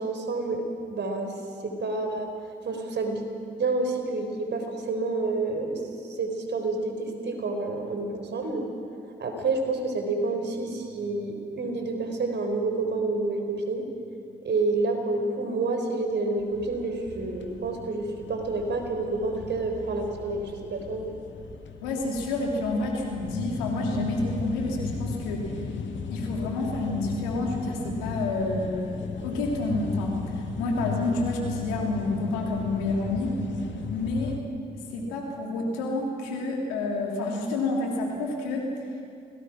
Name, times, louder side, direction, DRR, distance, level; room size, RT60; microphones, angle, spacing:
voice 1, 0.0-1.3 1.6-2.3 2.6-3.2 3.6-5.8 6.1-8.6 9.2-13.9 14.4-21.1, right 3 dB, 55° right, 5 dB, 4.1 m, -29 dB
sound 1, 16.4-34.4, left 5 dB, 65° left, 1.8 m, -36 dB
voice 2, 21.8-25.5 26.1-29.0 29.2-33.4 33.9-34.4 34.9-38.7, left 2 dB, 85° left, 0 dB, 3.1 m, -29 dB
27.0 x 19.0 x 6.0 m, 2.3 s
hypercardioid pair, 40°, 21 cm